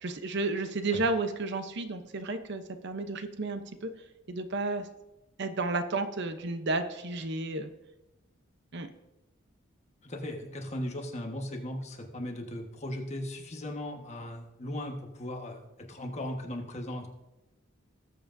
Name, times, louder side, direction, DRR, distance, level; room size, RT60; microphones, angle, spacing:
voice 1, 0.0-3.9 4.3-4.9 5.4-7.7 8.7-8.9, right 3 dB, 55° right, 8 dB, 0.7 m, -32 dB
voice 2, 10.0-17.1, left 1 dB, 35° left, 2 dB, 1.3 m, -37 dB
19.0 x 7.7 x 2.6 m, 0.99 s
head